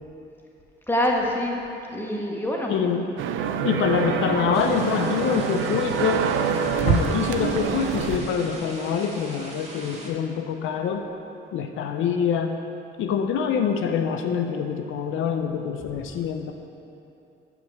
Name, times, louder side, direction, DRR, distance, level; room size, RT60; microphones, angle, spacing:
voice 1, 0.9-2.7 15.8-15.9, left 1 dB, 10° left, -1 dB, 1.6 m, -26 dB
voice 2, 2.7-3.1 3.6-6.3 6.8-11.0 11.5-12.6 13.0-16.5, left 7 dB, 85° left, 5 dB, 0.6 m, -25 dB
sound 1, 3.2-8.2, right 7 dB, 80° right, 0.6 m, -25 dB
sound 2, 4.5-10.1, right 1 dB, 30° right, 2.1 m, -41 dB
7.4 x 5.9 x 7.7 m, 2.7 s
cardioid pair, 90°, 20 cm